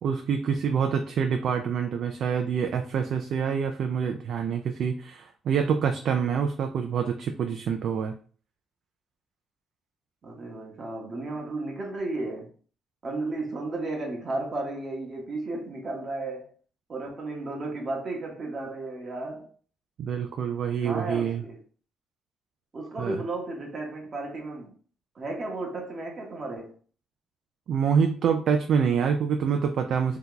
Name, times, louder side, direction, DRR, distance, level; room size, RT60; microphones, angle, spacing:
voice 1, 0.0-8.1 20.0-21.4 23.0-23.2 27.7-30.2, right 7 dB, 65° right, 0.3 m, -26 dB
voice 2, 10.2-12.5 13.0-16.5 16.9-19.5 20.8-21.6 22.7-24.7 25.1-26.7, right 2 dB, 40° right, 0.8 m, -34 dB
2.8 x 2.3 x 3.7 m
cardioid pair, 90°, 0 cm